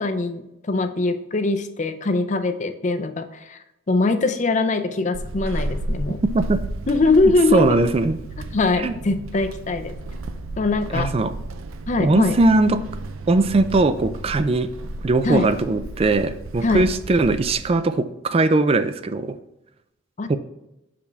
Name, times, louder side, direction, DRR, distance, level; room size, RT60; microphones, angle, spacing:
voice 1, 0.0-3.6 3.9-6.2 6.9-7.8 8.5-10.0 10.6-11.1 11.9-12.4 15.2-15.5 16.6-16.9 20.2-20.4, left 3 dB, 35° left, 9 dB, 0.5 m, -22 dB
Walk footsteps / Squeak, 5.1-17.8, right 2 dB, 85° right, 0.5 m, -33 dB
voice 2, 7.5-8.2 8.8-9.0 10.9-11.3 12.0-12.8 13.3-14.7 15.0-19.4 20.3-20.4, right 2 dB, 30° right, 12 dB, 0.3 m, -20 dB
6.9 x 5.0 x 3.5 m, 0.90 s
head